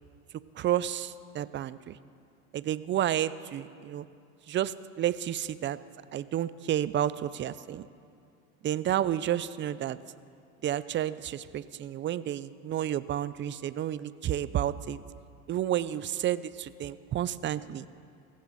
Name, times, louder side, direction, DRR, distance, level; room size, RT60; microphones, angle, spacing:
voice 1, 0.6-2.0 2.5-4.1 4.5-5.8 6.1-7.9 8.6-10.0 10.6-15.0 15.5-17.9, right 11 dB, 30° right, 17 dB, 0.5 m, -31 dB
22.0 x 16.0 x 4.1 m, 2.4 s
supercardioid pair, 100°, 43 cm